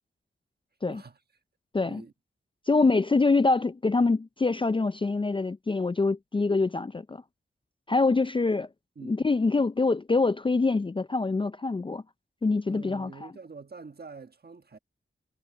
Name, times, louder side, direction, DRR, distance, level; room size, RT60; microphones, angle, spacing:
voice 1, 0.8-1.2 1.8-2.1 8.9-9.2 12.7-14.8, right 4 dB, 50° right, 1.4 m, -45 dB
voice 2, 2.7-7.2 7.9-8.7 9.0-12.0 12.4-13.1, left 3 dB, 25° left, 0.4 m, -25 dB
wide cardioid pair, 70°, 21 cm